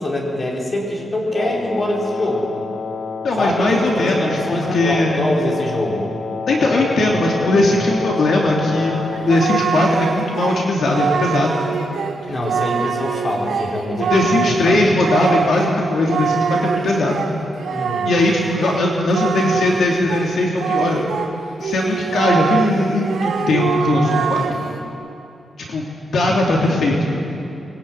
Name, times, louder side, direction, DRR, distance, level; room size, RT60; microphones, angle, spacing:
voice 1, 0.0-2.5 3.4-6.1 12.3-14.9 17.7-18.1 26.6-27.0, left 1 dB, 30° left, -2 dB, 4.5 m, -24 dB
Wind instrument woodwind instrument, 1.3-9.6, left 5 dB, 45° left, 1.5 m, -29 dB
voice 2, 3.2-5.2 6.5-8.9 9.3-11.6 14.0-17.3 18.1-21.1 21.6-24.5 25.6-25.9 26.1-27.2, left 2 dB, 60° left, -2 dB, 3.1 m, -19 dB
Singing, 8.2-21.3 21.6-24.8, right 6 dB, 80° right, 3.4 m, -24 dB
24.0 x 21.5 x 9.5 m, 2.7 s
wide cardioid pair, 175°, 0 cm